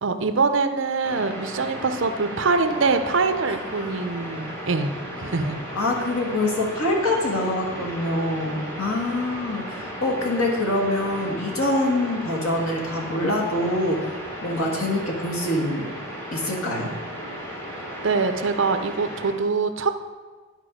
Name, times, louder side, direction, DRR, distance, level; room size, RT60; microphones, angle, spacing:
voice 1, 0.0-4.9 5.2-5.6 9.7-9.9 17.8-19.9, right 4 dB, 60° right, 8 dB, 0.6 m, -24 dB
sound 1, 1.0-19.3, equal, 10° left, 1.5 m, -35 dB
voice 2, 5.8-14.1 14.4-15.9 16.3-16.9, left 1 dB, 80° left, 0 dB, 1.7 m, -25 dB
11.0 x 4.8 x 5.1 m, 1.4 s
head